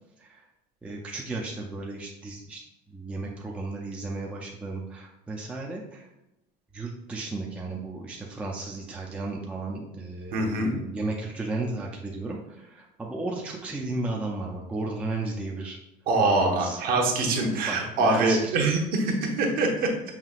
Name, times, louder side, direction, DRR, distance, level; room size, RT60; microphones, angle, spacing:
voice 1, 0.8-2.6 2.9-6.1 6.7-15.8 16.2-16.8 17.5-18.6, right 2 dB, 5° right, -1 dB, 0.4 m, -34 dB
voice 2, 10.3-10.7 16.1-19.9, right 2 dB, 45° right, 1 dB, 0.9 m, -24 dB
5.7 x 2.8 x 2.4 m, 0.89 s
cardioid pair, 140°, 21 cm